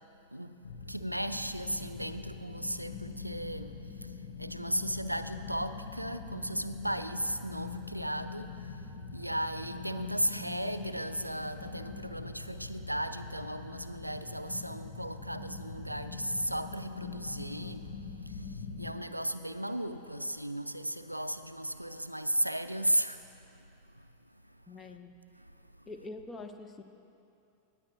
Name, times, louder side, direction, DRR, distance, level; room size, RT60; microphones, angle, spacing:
voice 1, 0.3-23.3 23.9-24.4 24.8-24.9 25.3-25.5 25.8-25.9, right 1 dB, 90° right, 0.3 m, -36 dB
sound 1, 0.6-18.9, left 4 dB, 65° left, 0.9 m, -43 dB
voice 2, 24.7-25.1 25.9-26.8, left 3 dB, 20° left, 0.6 m, -44 dB
18.5 x 8.8 x 2.5 m
figure-of-eight pair, 90°, 0 cm